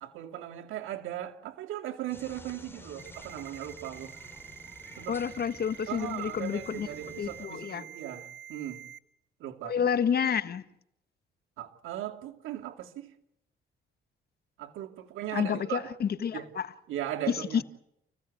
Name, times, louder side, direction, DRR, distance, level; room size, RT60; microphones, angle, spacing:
voice 1, 0.0-4.1 5.0-5.2 5.9-8.8 9.4-9.8 11.6-13.1 14.6-15.8 16.3-16.4 16.9-17.6, right 12 dB, 85° right, 2.6 m, -38 dB
sound 1, 2.1-7.5, left 2 dB, 10° left, 6.8 m, -51 dB
Ringtone, 3.0-9.0, right 9 dB, 65° right, 1.1 m, -47 dB
voice 2, 5.1-6.9 7.2-7.8 9.6-10.6 15.3-16.7 17.3-17.6, left 7 dB, 55° left, 1.5 m, -29 dB
29.5 x 16.0 x 8.4 m
cardioid pair, 90°, 20 cm